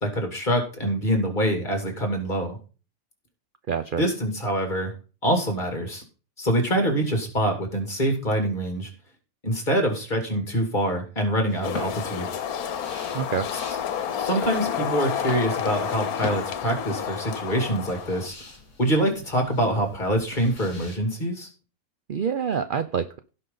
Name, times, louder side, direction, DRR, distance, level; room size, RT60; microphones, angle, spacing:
voice 1, 0.0-2.6 4.0-4.9 5.2-6.0 6.4-8.9 9.4-12.3 14.2-18.3 18.8-21.5, right 1 dB, 30° left, 3 dB, 2.7 m, -25 dB
voice 2, 3.7-4.0 13.1-13.5 22.1-23.2, right 7 dB, 60° right, 11 dB, 0.5 m, -26 dB
sound 1, 11.5-21.0, left 3 dB, 55° left, 2.6 m, -42 dB
sound 2, 11.6-18.3, left 8 dB, 85° left, 1.4 m, -30 dB
16.5 x 5.7 x 3.9 m, 0.35 s
omnidirectional pair, 1.5 m